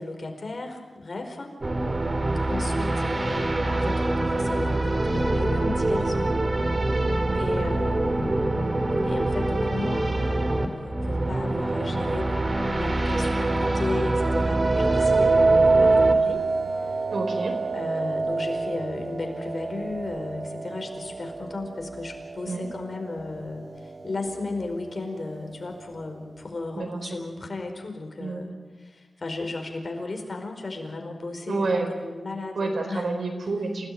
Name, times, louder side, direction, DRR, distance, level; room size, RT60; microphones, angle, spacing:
voice 1, 0.0-1.5 2.5-6.3 7.3-16.4 16.8-17.0 17.7-28.5 28.8-33.1, left 2 dB, 55° left, 4 dB, 4.9 m, -35 dB
sound 1, 1.6-16.1, right 2 dB, 35° right, 2.4 m, -25 dB
voice 2, 7.3-7.7 17.1-17.6 22.5-22.7 26.8-27.2 28.2-28.5 31.5-31.9 32.6-33.9, right 3 dB, 85° right, 5 dB, 4.4 m, -29 dB
sound 2, 14.1-23.3 23.8-24.3, right 3 dB, 65° right, 0.9 m, -25 dB
28.5 x 18.0 x 9.5 m, 1.3 s
wide cardioid pair, 85°, 0 cm